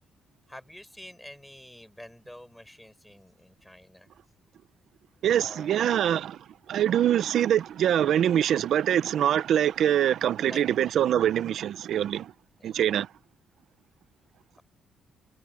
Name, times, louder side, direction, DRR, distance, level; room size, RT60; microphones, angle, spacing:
voice 1, 0.5-4.1 5.4-5.9 10.5-10.6 12.6-12.7, left 1 dB, 5° left, 5.9 m, -47 dB
voice 2, 5.2-6.4 6.7-12.3 12.6-13.1, right 10 dB, 70° right, 0.8 m, -24 dB
cardioid pair, 90°, 0 cm